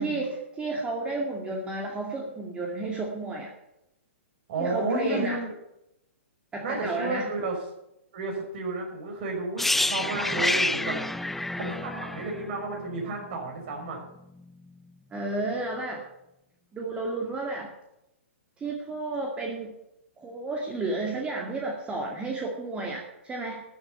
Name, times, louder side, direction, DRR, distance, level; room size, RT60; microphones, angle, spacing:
voice 1, 0.0-3.5 4.6-5.4 6.5-7.3 15.1-16.0 16.7-17.7 18.6-19.8 20.2-23.6, right 2 dB, 15° right, 0 dB, 2.2 m, -32 dB
voice 2, 4.5-5.5 6.6-7.6 8.1-11.0 11.5-14.0, right 2 dB, 50° right, 1 dB, 6.1 m, -32 dB
sound 1, 9.6-13.4 13.7-13.9, left 2 dB, 5° left, 0.4 m, -28 dB
13.0 x 8.2 x 8.2 m, 0.86 s
hypercardioid pair, 125°, 7 cm